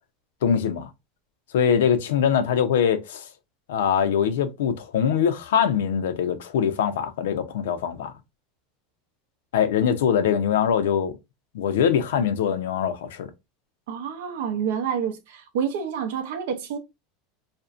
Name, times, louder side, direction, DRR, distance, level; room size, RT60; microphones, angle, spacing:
voice 1, 0.4-0.9 1.5-3.3 3.7-8.1 9.5-11.2 11.5-13.3, left 8 dB, 90° left, 0.4 m, -23 dB
voice 2, 13.9-16.8, right 7 dB, 80° right, 0.5 m, -28 dB
2.5 x 2.1 x 2.4 m
supercardioid pair, 130°, 0 cm